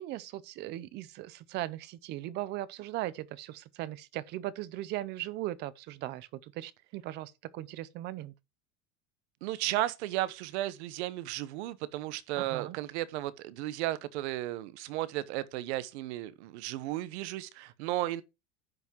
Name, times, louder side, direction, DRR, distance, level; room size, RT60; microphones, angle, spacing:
voice 1, 0.0-8.3 12.4-12.8, right 15 dB, 30° right, 0.6 m, -38 dB
voice 2, 9.4-18.2, right 15 dB, 80° right, 1.1 m, -34 dB
10.5 x 6.0 x 4.5 m
cardioid pair, 180°, 33 cm